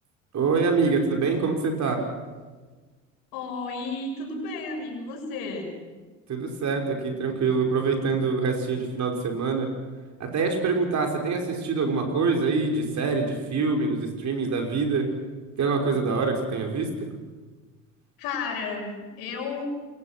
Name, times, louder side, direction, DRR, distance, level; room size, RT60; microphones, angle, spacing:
voice 1, 0.3-2.1 6.3-9.7 10.2-15.1 15.6-16.9, right 4 dB, 45° right, 2 dB, 5.8 m, -25 dB
voice 2, 3.3-5.7 18.2-19.7, left 3 dB, 60° left, 3 dB, 6.6 m, -32 dB
28.5 x 22.0 x 6.2 m, 1.3 s
hypercardioid pair, 65°, 39 cm